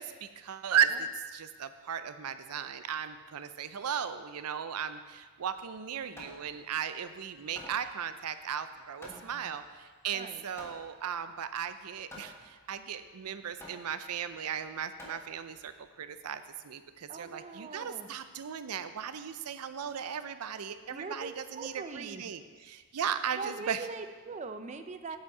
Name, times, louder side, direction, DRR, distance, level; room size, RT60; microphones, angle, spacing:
voice 1, 0.0-23.8, right 8 dB, 85° right, 11 dB, 0.5 m, -36 dB
Hammer, 5.6-15.8, left 1 dB, 10° left, 1.3 m, -52 dB
voice 2, 9.0-9.6 10.1-10.4 17.1-18.1 20.9-22.3 23.3-25.2, right 4 dB, 30° right, 8 dB, 0.4 m, -42 dB
8.1 x 7.8 x 4.8 m, 1.5 s
head